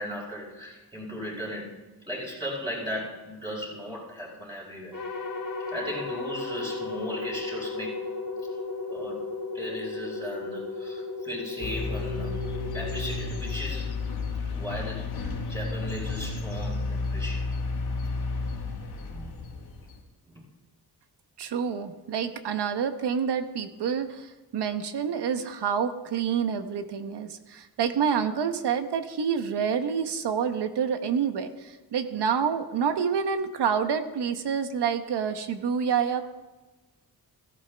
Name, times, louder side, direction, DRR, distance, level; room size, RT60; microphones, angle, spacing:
voice 1, 0.0-1.8 2.1-5.0 5.7-8.1 8.9-9.3 9.5-12.4 12.7-17.6 19.0-19.4 20.3-20.4, equal, 10° right, -6 dB, 4.3 m, -37 dB
sound 1, 4.9-14.2, left 3 dB, 55° left, 2.2 m, -35 dB
sound 2, 11.6-20.0, left 3 dB, 75° left, 2.3 m, -32 dB
voice 2, 21.4-36.2, right 7 dB, 85° right, 8 dB, 1.1 m, -28 dB
17.0 x 14.5 x 3.5 m, 1.2 s
wide cardioid pair, 125°, 39 cm